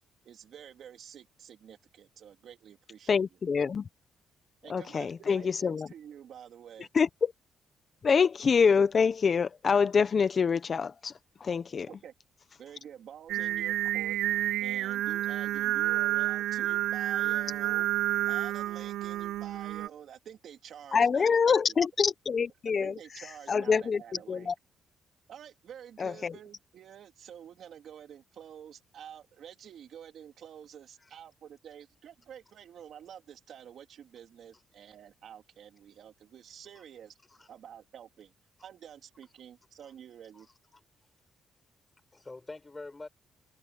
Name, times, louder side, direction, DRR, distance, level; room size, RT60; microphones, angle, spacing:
voice 1, 0.2-3.2 4.6-6.9 11.9-12.1 12.6-14.2 14.6-21.6 22.8-24.5 25.3-38.3 38.6-40.5, right 9 dB, 65° right, 3.3 m, -49 dB
voice 2, 3.1-3.9 4.7-5.9 6.9-7.3 8.0-11.1 11.4-11.9 20.9-22.9 23.5-24.0 24.3-24.5 26.0-26.3, left 6 dB, 45° left, 0.9 m, -25 dB
Singing, 13.3-19.9, right 14 dB, 85° right, 0.4 m, -30 dB
voice 3, 42.1-43.1, left 3 dB, 20° left, 5.0 m, -45 dB
cardioid pair, 90°, 0 cm